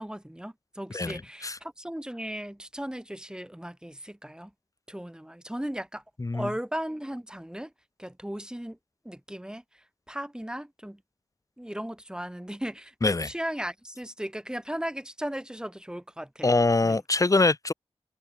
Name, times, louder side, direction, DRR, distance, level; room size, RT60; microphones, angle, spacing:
voice 1, 0.0-4.5 4.9-6.0 6.3-7.7 8.0-8.8 9.0-11.0 11.6-16.5 16.8-17.0, equal, 5° right, 4.3 m, -36 dB
voice 2, 0.9-1.6 6.2-6.5 13.0-13.3 16.4-17.7, left 3 dB, 30° left, 1.0 m, -24 dB
wide cardioid pair, 65°, 10 cm